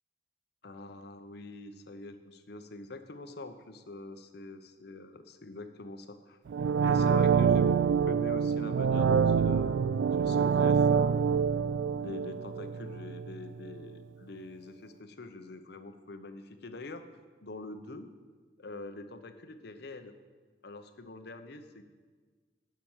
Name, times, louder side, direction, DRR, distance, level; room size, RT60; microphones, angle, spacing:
voice 1, 0.6-6.4 6.8-11.2 12.0-17.0 17.4-18.1 18.6-20.1 20.6-21.8, left 2 dB, 60° left, 9 dB, 0.8 m, -44 dB
sound 1, 6.5-13.3 13.7-13.8, right 6 dB, 80° right, 0.3 m, -26 dB
12.5 x 5.9 x 7.3 m, 1.4 s
head